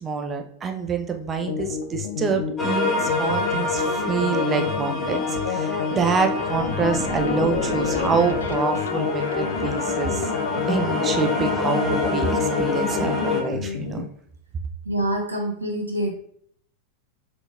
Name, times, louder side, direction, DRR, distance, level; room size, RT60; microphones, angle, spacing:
voice 1, 0.0-10.3 10.7-14.0, right 5 dB, 20° right, 5 dB, 0.6 m, -26 dB
sound 1, 1.4-14.1, left 6 dB, 65° left, 0.4 m, -29 dB
sound 2, 2.6-13.4, left 3 dB, 20° left, 1.0 m, -27 dB
sound 3, 6.2-8.7, left 3 dB, 40° left, 1.1 m, -30 dB
voice 2, 14.8-16.1, right 1 dB, 75° right, 3 dB, 0.7 m, -26 dB
4.8 x 3.8 x 2.5 m, 0.65 s
figure-of-eight pair, 90°, 0 cm